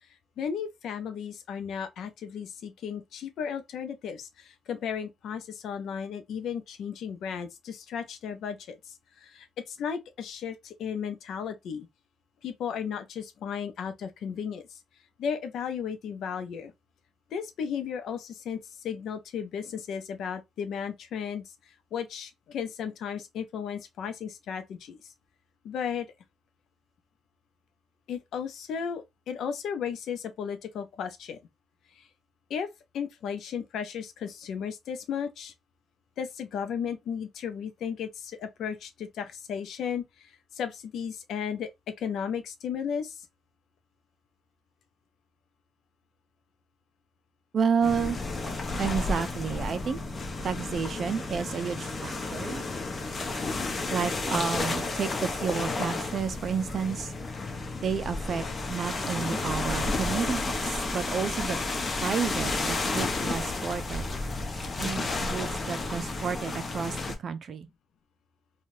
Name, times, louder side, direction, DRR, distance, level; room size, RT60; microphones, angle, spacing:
voice 1, 0.4-8.8 9.2-11.9 12.4-14.6 15.2-16.7 17.3-18.6 18.8-21.4 21.9-25.0 25.6-26.1 28.1-31.4 32.5-32.7 32.9-35.5 36.2-40.0 40.6-41.7 42.0-43.2, left 7 dB, 75° left, 0.6 m, -34 dB
voice 2, 47.5-48.2 48.8-50.0 50.4-52.6 53.9-57.1 57.8-61.6 62.0-64.1 64.8-67.0 67.2-67.7, right 6 dB, 55° right, 0.5 m, -31 dB
sound 1, 47.8-67.2, left 3 dB, 35° left, 0.7 m, -32 dB
3.1 x 2.4 x 2.6 m
cardioid pair, 90°, 0 cm